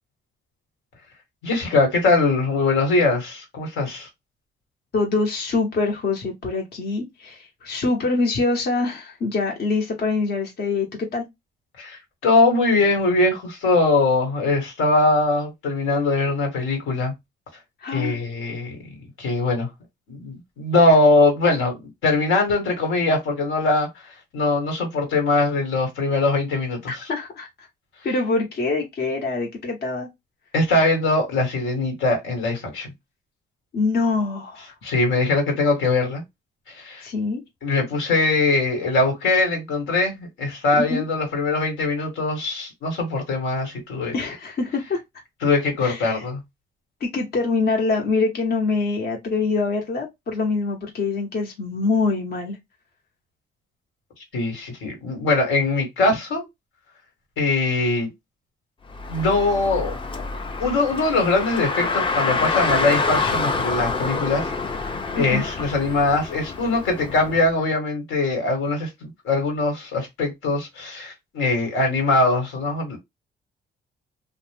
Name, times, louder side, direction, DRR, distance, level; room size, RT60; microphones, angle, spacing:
voice 1, 1.4-4.1 11.8-17.1 17.9-18.8 19.2-19.7 20.1-23.9 24.3-26.9 30.5-32.9 34.8-36.2 36.7-37.0 37.6-44.1 45.4-46.4 54.3-56.4 57.4-58.1 59.1-60.0 60.6-64.5 65.1-73.0, left 2 dB, 85° left, 1.3 m, -21 dB
voice 2, 4.9-11.2 17.8-18.2 26.9-27.7 28.0-30.1 33.7-34.7 37.0-37.4 40.7-41.0 44.1-45.0 45.8-46.2 47.0-52.6 65.2-65.4, left 3 dB, 55° left, 0.9 m, -24 dB
Car, 58.9-67.5, left 4 dB, 25° left, 0.5 m, -27 dB
2.6 x 2.0 x 3.2 m
cardioid pair, 90°, 20 cm